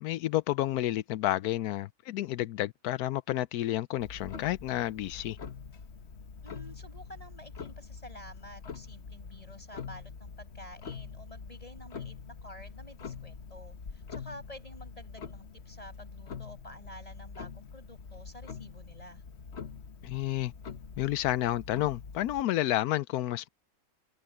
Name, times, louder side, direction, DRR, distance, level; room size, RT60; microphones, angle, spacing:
voice 1, 0.0-5.4 20.0-20.5 21.0-23.5, left 15 dB, 85° left, 1.1 m, -30 dB
Clock, 4.0-22.4, left 5 dB, 50° left, 1.4 m, -45 dB
voice 2, 6.4-19.2, equal, 25° left, 7.6 m, -50 dB
omnidirectional pair, 1.6 m